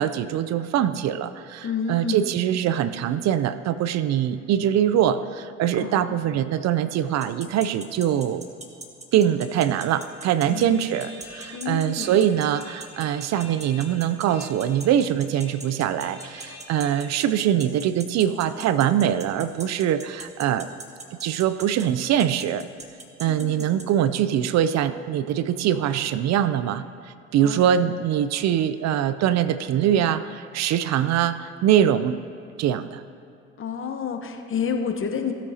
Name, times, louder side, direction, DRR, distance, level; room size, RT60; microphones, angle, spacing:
voice 1, 0.0-8.4 9.1-20.7 21.2-22.6 23.2-26.9 27.3-32.2 32.6-33.0, right 10 dB, 60° right, 13 dB, 0.5 m, -23 dB
voice 2, 1.6-2.4 5.8-6.3 10.5-10.8 11.5-12.1 23.3-23.8 27.4-27.8 33.6-35.3, left 6 dB, 40° left, 5 dB, 1.0 m, -30 dB
sound 1, 7.2-23.8, right 3 dB, 20° right, 1.3 m, -39 dB
sound 2, 9.3-17.0, left 3 dB, 80° left, 2.5 m, -48 dB
16.5 x 8.2 x 2.8 m, 2.6 s
supercardioid pair, 65°, 30 cm